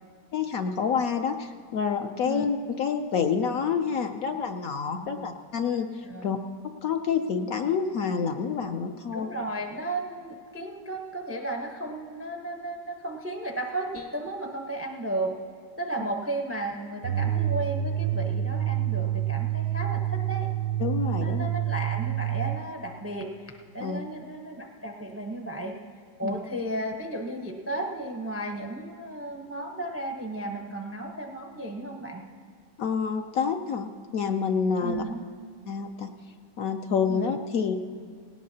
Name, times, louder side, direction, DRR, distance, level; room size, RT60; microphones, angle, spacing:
voice 1, 0.3-6.4 6.8-9.3 20.8-21.5 23.8-24.0 26.2-26.4 32.8-35.0 35.7-36.1 36.6-37.8, left 6 dB, 65° left, 6 dB, 0.9 m, -28 dB
voice 2, 5.0-5.3 6.0-6.4 9.1-15.4 15.8-20.5 21.2-25.8 26.2-32.2 34.8-35.2 37.1-37.4, right 1 dB, 20° right, 2 dB, 0.4 m, -34 dB
sound 1, 17.0-22.6, right 11 dB, 70° right, 0.9 m, -28 dB
18.0 x 17.5 x 2.8 m, 2.1 s
omnidirectional pair, 1.9 m